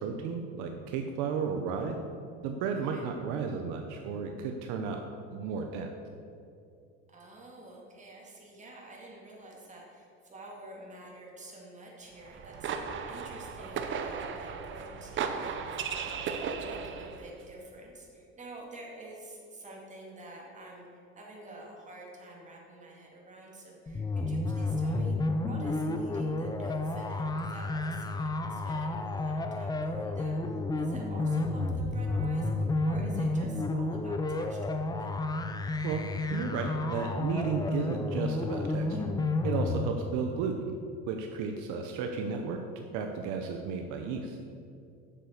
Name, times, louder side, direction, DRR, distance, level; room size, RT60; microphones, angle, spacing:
voice 1, 0.0-2.0 2.4-5.0 5.3-5.9 35.8-36.0 36.3-39.1 39.4-40.7 41.1-42.6 42.9-44.4, right 5 dB, 65° right, 4 dB, 0.9 m, -33 dB
voice 2, 2.7-3.0 7.1-35.1, right 2 dB, 20° right, -2 dB, 2.4 m, -48 dB
sound 1, 12.2-17.3, right 6 dB, 35° right, 0.8 m, -36 dB
sound 2, 23.9-39.9, left 2 dB, 10° left, 0.5 m, -31 dB
7.4 x 7.1 x 6.7 m, 2.5 s
supercardioid pair, 120°, 32 cm